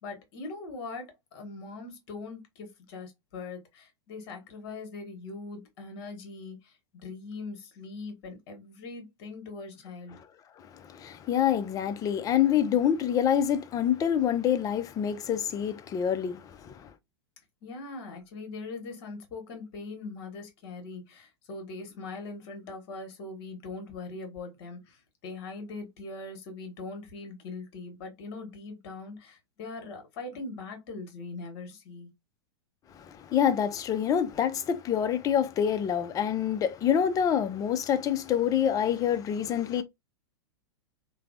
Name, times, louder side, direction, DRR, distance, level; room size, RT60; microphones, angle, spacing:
voice 1, 0.0-6.8 7.0-10.2 17.6-32.1, left 3 dB, 55° left, 1.2 m, -41 dB
voice 2, 10.6-16.9 32.9-39.8, left 9 dB, 25° left, 0.4 m, -26 dB
3.2 x 2.0 x 2.4 m
hypercardioid pair, 105°, 14 cm